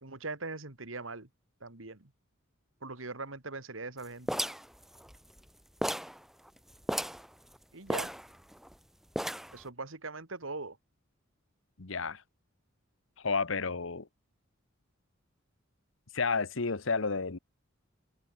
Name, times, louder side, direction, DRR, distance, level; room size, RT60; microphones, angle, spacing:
voice 1, 0.0-1.3 1.6-2.1 2.8-4.4 7.7-8.1 9.5-10.8, right 3 dB, 75° right, 2.8 m, -41 dB
sound 1, 4.3-5.5 5.8-6.2 6.5-6.6 6.8-7.3 7.9-8.7 9.2-9.6, equal, ahead, 1.2 m, -34 dB
voice 2, 11.8-12.2 13.2-14.1 16.1-17.4, left 4 dB, 70° left, 1.2 m, -31 dB
head